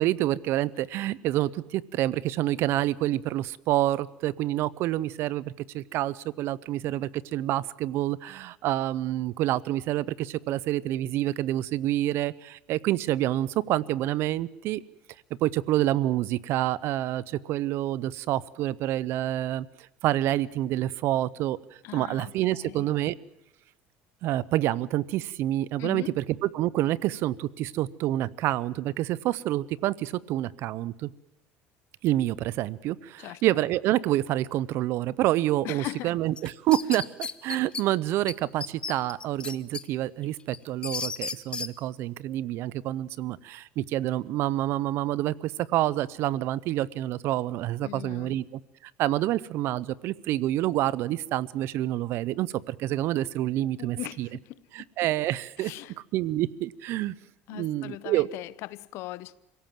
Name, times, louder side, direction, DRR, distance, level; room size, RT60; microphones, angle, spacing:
voice 1, 0.0-14.8 15.4-19.7 20.0-21.6 21.9-23.1 24.2-31.1 32.0-48.4 48.8-54.3 54.7-55.7 56.1-57.1 57.5-58.3, right 14 dB, 65° right, 21 dB, 0.7 m, -28 dB
voice 2, 21.8-22.3 22.6-22.9 25.8-26.1 33.2-33.4 35.6-36.1 47.8-48.4 53.6-54.9 55.6-55.9 57.5-59.4, left 17 dB, 70° left, 18 dB, 0.8 m, -39 dB
sound 1, 36.4-37.8 38.3-38.4 38.6-39.8 40.2-41.7, left 4 dB, 20° left, 0.9 m, -34 dB
25.5 x 17.0 x 7.6 m, 0.93 s
supercardioid pair, 110°, 5 cm